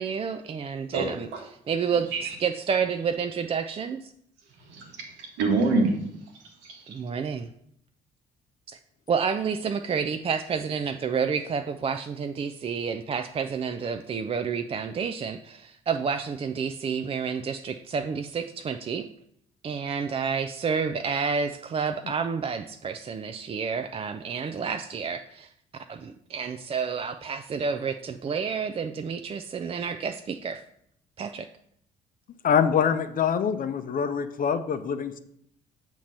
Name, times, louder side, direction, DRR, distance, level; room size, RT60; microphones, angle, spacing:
voice 1, 0.0-1.3 1.7-4.1 6.9-7.5 8.7-8.8 9.1-19.1 19.6-25.5 25.9-30.6 31.2-31.5, right 6 dB, 30° right, 7 dB, 0.4 m, -29 dB
voice 2, 0.9-1.4 2.1-2.3 4.7-6.0 6.6-6.9, right 3 dB, 70° right, 3 dB, 1.2 m, -26 dB
voice 3, 32.4-35.2, left 7 dB, 45° left, 9 dB, 0.6 m, -24 dB
7.2 x 3.0 x 5.4 m, 0.71 s
hypercardioid pair, 50°, 20 cm